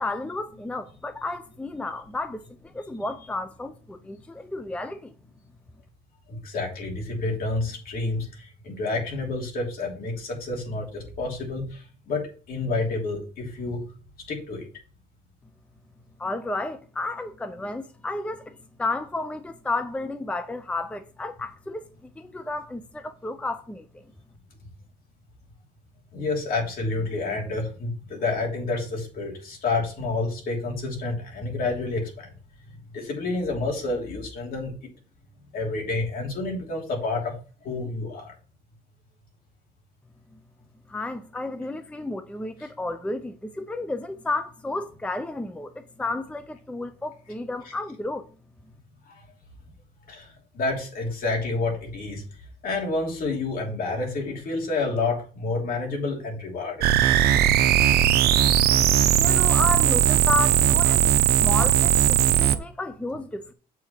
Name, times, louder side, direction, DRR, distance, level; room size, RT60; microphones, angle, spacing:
voice 1, 0.0-5.1 16.2-21.9 22.2-24.0 40.9-48.3 59.2-63.5, left 2 dB, 5° left, 0.5 m, -32 dB
voice 2, 6.3-13.8 14.3-14.7 26.1-32.3 32.9-34.9 35.5-37.3 37.6-38.3 42.6-42.7 47.6-47.7 49.1-49.2 50.1-52.2 52.6-56.9, left 3 dB, 60° left, 3.1 m, -29 dB
sound 1, 56.8-62.6, right 10 dB, 70° right, 0.8 m, -19 dB
7.7 x 4.8 x 4.4 m
cardioid pair, 110°, 17 cm